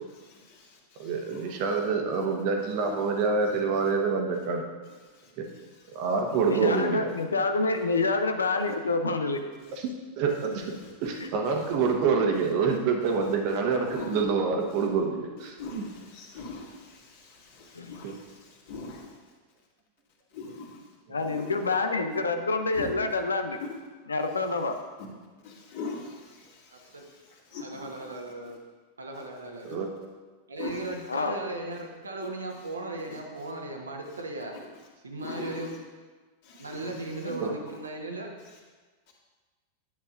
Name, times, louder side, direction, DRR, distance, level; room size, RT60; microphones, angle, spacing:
voice 1, 0.0-1.6 5.2-5.8 6.3-6.4 9.6-9.8 10.8-11.2 11.8-11.9 13.9-14.2 15.6-19.1 20.3-20.8 21.2-21.5 22.7-22.9 25.4-28.1 28.4-28.6 30.6-30.9 33.1-33.2 35.2-35.7 36.4-37.8, left 3 dB, 50° left, -4 dB, 2.1 m, -42 dB
voice 2, 1.0-4.6 5.4-5.5 5.9-7.1 10.2-10.7 11.0-15.8 18.0-18.1 29.6-29.9 37.4-37.5, right 5 dB, 45° right, 3 dB, 1.1 m, -26 dB
voice 3, 6.5-9.4 11.2-11.3 17.7-18.0 21.1-23.6 24.1-24.8 31.1-31.3 37.2-37.3, left 3 dB, 75° left, 7 dB, 0.6 m, -27 dB
voice 4, 26.7-27.0 27.6-28.6 29.0-29.8 30.5-34.6 35.0-35.7 36.6-38.3, right 2 dB, 75° right, 2 dB, 1.2 m, -37 dB
10.5 x 8.3 x 2.6 m, 1.3 s
figure-of-eight pair, 90°, 0 cm